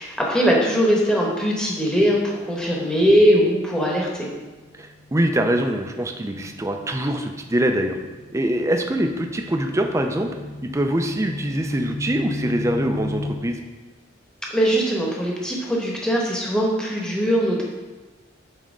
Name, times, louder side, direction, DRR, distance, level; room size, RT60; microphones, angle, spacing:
voice 1, 0.0-4.3 14.5-17.6, equal, 5° left, -3 dB, 1.0 m, -20 dB
sound 1, 4.0-13.4, left 2 dB, 50° left, 0.9 m, -36 dB
voice 2, 4.7-8.0 8.3-10.3 10.6-13.6, right 1 dB, 15° right, 4 dB, 0.5 m, -24 dB
7.2 x 4.3 x 3.7 m, 1.2 s
head